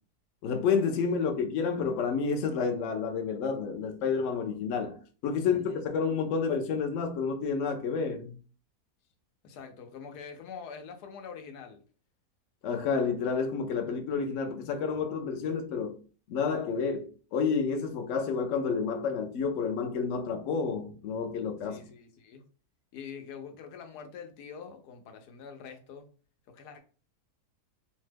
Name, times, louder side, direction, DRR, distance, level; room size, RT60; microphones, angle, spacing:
voice 1, 0.4-8.4 12.6-16.0 16.3-21.8, left 5 dB, 65° left, 0.8 m, -30 dB
voice 2, 1.0-1.3 5.3-5.8 9.4-11.8 21.6-22.4 22.9-26.1 26.5-26.8, left 6 dB, 90° left, 1.2 m, -45 dB
2.9 x 2.2 x 3.2 m
omnidirectional pair, 1.7 m